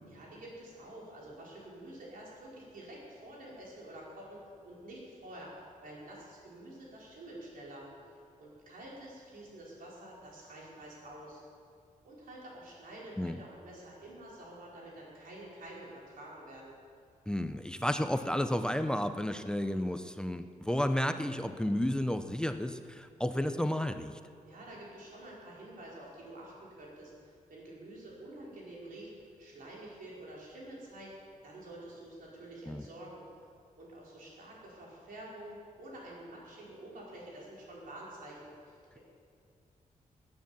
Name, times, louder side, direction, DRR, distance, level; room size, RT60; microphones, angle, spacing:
voice 1, 0.0-7.8 8.4-11.4 12.0-16.7 24.4-33.2 33.8-39.0, right 1 dB, 90° right, -5 dB, 4.9 m, -48 dB
voice 2, 17.3-24.2 32.7-32.8, left 1 dB, 5° left, 9 dB, 0.5 m, -32 dB
18.5 x 9.7 x 7.3 m, 2.2 s
wide cardioid pair, 180°, 14 cm